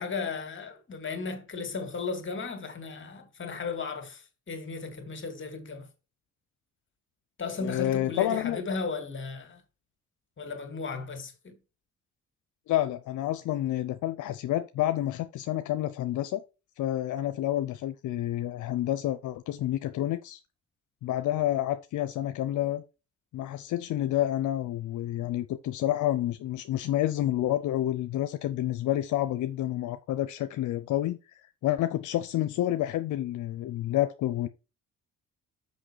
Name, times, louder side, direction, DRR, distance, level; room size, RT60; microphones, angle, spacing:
voice 1, 0.0-5.9 7.4-9.6 10.4-11.6, left 4 dB, 40° left, 2.3 m, -35 dB
voice 2, 7.6-8.6 12.7-16.4 16.8-20.4 21.0-22.8 23.3-34.5, left 13 dB, 80° left, 0.6 m, -29 dB
6.3 x 5.5 x 4.7 m
cardioid pair, 90°, 30 cm